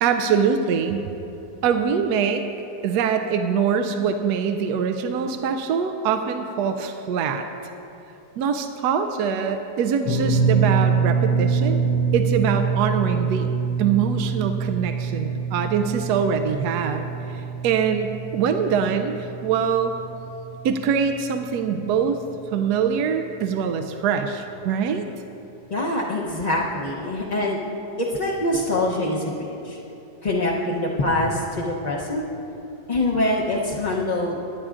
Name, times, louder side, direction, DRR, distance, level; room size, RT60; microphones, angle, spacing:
voice 1, 0.0-1.0 1.6-2.4 2.8-7.7 8.4-11.8 12.1-13.5 13.8-19.9 20.6-22.2 22.5-25.1, right 7 dB, 80° right, 6 dB, 1.1 m, -23 dB
sound 1, 10.0-22.3 22.5-22.8 24.5-24.6, right 5 dB, 85° left, 1.6 m, -25 dB
voice 2, 25.7-27.6 28.0-29.8 30.2-32.3 32.9-34.4, left 1 dB, 40° left, -5 dB, 0.6 m, -24 dB
18.5 x 10.5 x 2.5 m, 3.0 s
omnidirectional pair, 1.7 m